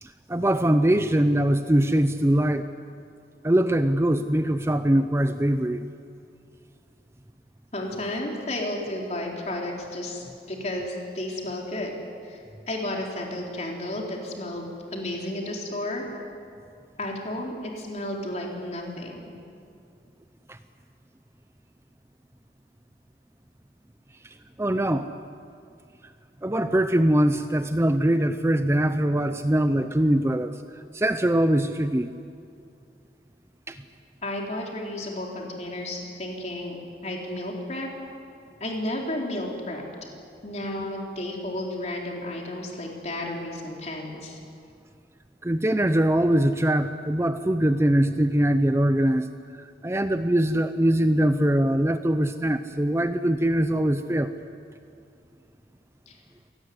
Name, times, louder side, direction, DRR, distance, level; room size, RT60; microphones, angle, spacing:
voice 1, 0.0-2.7 3.4-5.8 20.5-20.6 24.2-25.1 26.4-32.1 33.7-33.8 45.4-54.3, right 1 dB, 15° right, 10 dB, 0.6 m, -22 dB
voice 2, 7.7-11.9 12.2-16.0 17.0-19.3 34.2-37.9 38.6-39.8 40.4-44.4 56.1-56.2, left 1 dB, 40° left, 0 dB, 4.2 m, -32 dB
26.0 x 18.5 x 9.7 m, 2.4 s
head